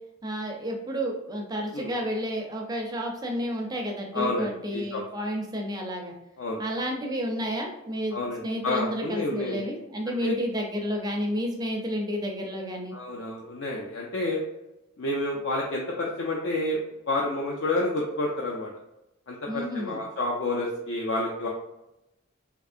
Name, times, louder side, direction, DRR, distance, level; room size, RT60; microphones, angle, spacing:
voice 1, 0.2-6.1 6.6-12.9 19.5-20.0, equal, 20° right, 1 dB, 0.4 m, -31 dB
voice 2, 4.1-5.0 6.4-6.6 8.1-9.6 10.2-10.3 12.9-14.4 15.0-16.8 17.1-18.7 19.3-21.5, left 2 dB, 60° left, -2 dB, 0.4 m, -29 dB
3.4 x 2.8 x 2.4 m, 0.92 s
head